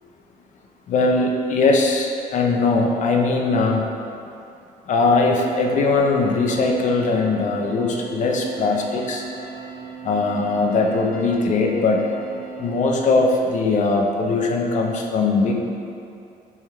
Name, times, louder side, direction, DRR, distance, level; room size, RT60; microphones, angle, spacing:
voice 1, 0.9-3.9 4.9-9.3 10.0-12.1 12.6-15.6, left 3 dB, 45° left, 1 dB, 0.5 m, -20 dB
sound 1, 6.0-12.8, right 6 dB, 70° left, 1.0 m, -38 dB
3.4 x 2.3 x 4.4 m, 2.6 s
cardioid pair, 110°, 17 cm